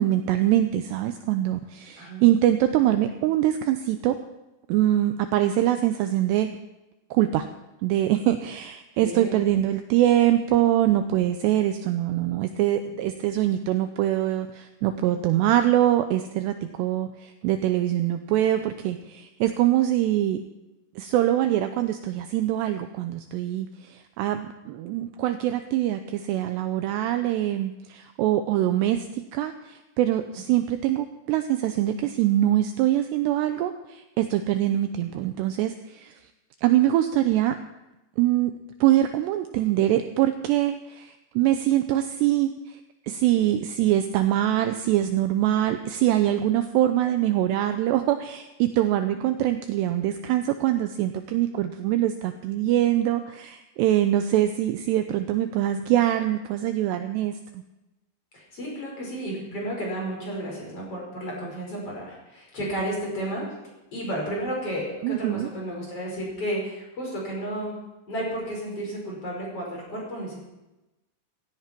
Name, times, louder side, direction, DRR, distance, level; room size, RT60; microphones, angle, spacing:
voice 1, 0.0-4.2 4.7-6.5 7.1-7.5 7.8-20.4 21.0-36.1 36.6-37.6 38.2-38.5 38.8-57.6 65.0-65.5, right 13 dB, 85° right, 8 dB, 2.5 m, -24 dB
voice 2, 9.0-9.4 30.5-30.6 58.3-63.4 63.9-67.8 68.1-70.4, right 1 dB, 30° left, -2 dB, 5.7 m, -32 dB
16.5 x 16.0 x 4.5 m, 0.99 s
omnidirectional pair, 5.5 m